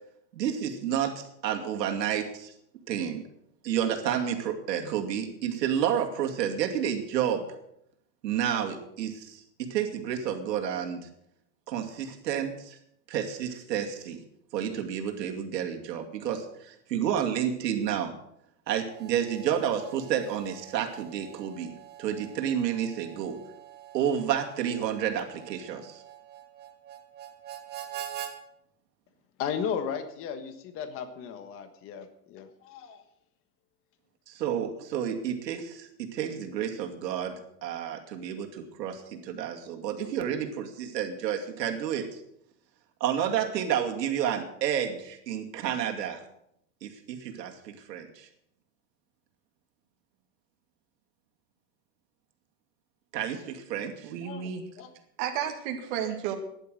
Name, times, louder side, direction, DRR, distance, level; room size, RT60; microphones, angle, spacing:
voice 1, 0.3-2.5 2.9-3.2 3.6-7.4 8.2-11.0 11.7-12.8 13.1-14.2 14.5-18.1 18.7-21.7 22.0-23.4 23.9-26.0 34.3-37.3 37.6-42.2 43.0-46.2 46.8-48.3 53.1-54.1, right 9 dB, 85° right, 3 dB, 2.5 m, -30 dB
Harmonica, 18.8-28.3, right 11 dB, 20° right, 1.1 m, -45 dB
voice 2, 29.4-33.0 54.2-54.9, left 7 dB, 25° left, 8 dB, 1.4 m, -35 dB
voice 3, 54.0-54.6 55.2-56.3, right 9 dB, 45° right, 3 dB, 2.1 m, -32 dB
13.0 x 11.0 x 6.4 m, 0.75 s
supercardioid pair, 160°, 48 cm